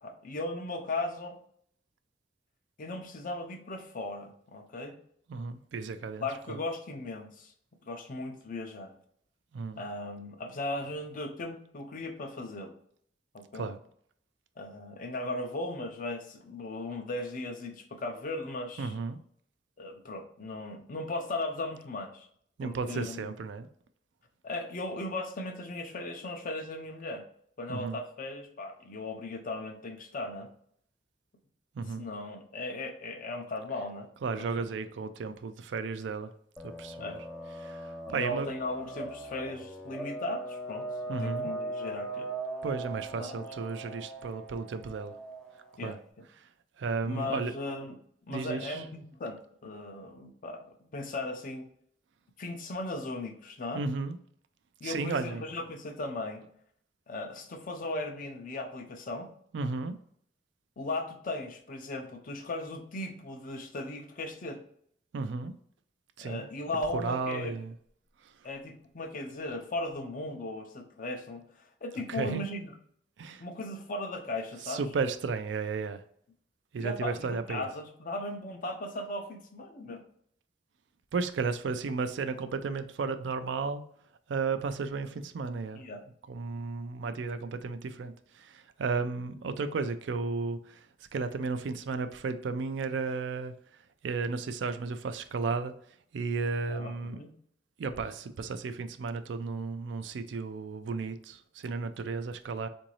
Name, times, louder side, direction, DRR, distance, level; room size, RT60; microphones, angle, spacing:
voice 1, 0.0-1.4 2.8-5.0 6.2-7.5 7.9-8.9 9.8-12.7 13.3-13.7 14.6-19.0 19.8-22.3 22.6-23.2 24.4-27.2 27.6-30.5 32.0-34.1 34.4-34.7 37.0-37.2 38.1-40.9 41.2-42.3 43.2-43.4 45.8-46.0 47.0-48.0 48.3-51.7 52.4-53.8 54.8-56.4 57.1-59.3 60.8-64.6 66.2-67.6 68.4-72.7 73.4-74.8 76.8-80.0 85.7-86.0 96.7-97.3, left 2 dB, 50° left, 5 dB, 0.6 m, -37 dB
voice 2, 5.3-6.6 9.5-9.8 13.5-13.8 18.8-19.2 22.6-23.7 27.7-28.0 31.8-32.1 34.2-36.3 36.6-37.2 37.6-38.5 41.1-41.5 42.6-45.2 45.8-46.0 46.8-47.5 48.3-48.8 53.7-54.2 54.8-55.4 59.5-60.0 65.1-65.5 66.2-66.4 66.9-67.7 72.1-72.4 73.2-73.4 74.7-76.0 76.7-77.7 81.1-83.8 84.3-85.8 86.3-90.9 91.1-93.5 94.0-95.7 96.1-97.2 97.8-102.7, right 4 dB, 75° right, 10 dB, 0.4 m, -34 dB
sound 1, 36.6-45.8, right 2 dB, 5° left, 0.4 m, -40 dB
3.8 x 2.6 x 3.0 m, 0.65 s
head